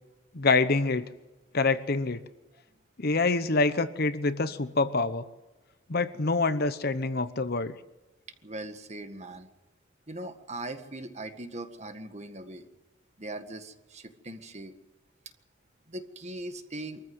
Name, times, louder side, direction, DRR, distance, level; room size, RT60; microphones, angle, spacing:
voice 1, 0.3-1.1 1.5-2.2 3.0-5.2 5.9-7.8, left 3 dB, 50° left, 12 dB, 1.0 m, -26 dB
voice 2, 8.4-9.5 10.1-12.7 13.2-14.7 15.9-17.0, right 1 dB, 35° right, 7 dB, 1.7 m, -40 dB
24.5 x 14.5 x 8.0 m, 1.1 s
head